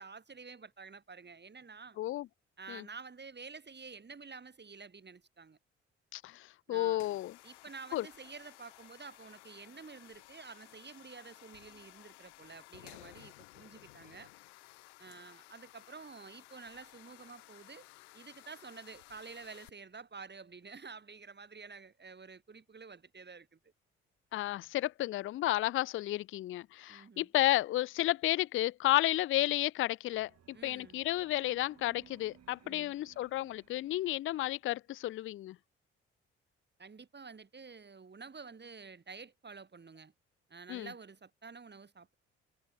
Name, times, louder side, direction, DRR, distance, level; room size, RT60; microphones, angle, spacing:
voice 1, 0.0-2.0 2.6-5.6 6.7-7.1 7.4-14.3 15.0-17.9 18.1-23.7 26.9-27.3 30.5-31.0 32.6-33.0 36.8-40.1 40.5-42.1, right 5 dB, 30° right, 3.7 m, -50 dB
voice 2, 6.1-7.3 7.9-8.0 24.3-35.6 40.7-40.9, left 15 dB, 40° left, 0.4 m, -32 dB
sound 1, 6.9-19.7, left 23 dB, 80° left, 7.0 m, -57 dB
sound 2, 30.1-34.7, right 8 dB, 50° right, 3.9 m, -62 dB
hypercardioid pair, 50°, 32 cm